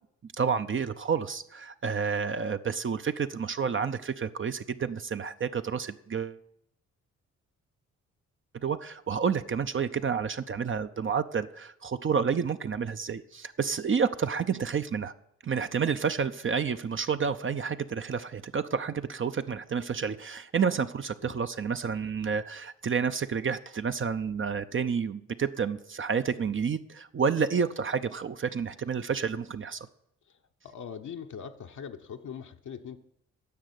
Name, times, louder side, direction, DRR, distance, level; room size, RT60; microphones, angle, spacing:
voice 1, 0.4-6.4 8.6-15.1 15.4-29.9, right 6 dB, 35° right, 10 dB, 0.7 m, -30 dB
voice 2, 30.3-33.0, left 7 dB, 55° left, 3 dB, 1.0 m, -42 dB
10.5 x 6.6 x 8.1 m, 0.77 s
hypercardioid pair, 50°, 35 cm